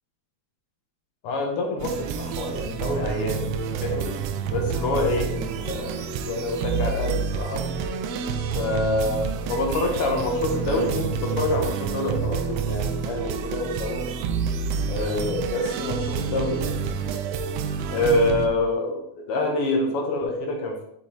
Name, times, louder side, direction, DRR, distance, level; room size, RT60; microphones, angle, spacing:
voice 1, 1.2-3.5 3.8-4.1 4.5-7.6 8.5-14.1 14.9-16.9 17.9-20.8, left 2 dB, 65° left, 2 dB, 1.4 m, -26 dB
sound 1, 1.8-18.5, right 6 dB, 85° right, 1.5 m, -28 dB
7.1 x 5.7 x 3.2 m, 0.79 s
omnidirectional pair, 3.5 m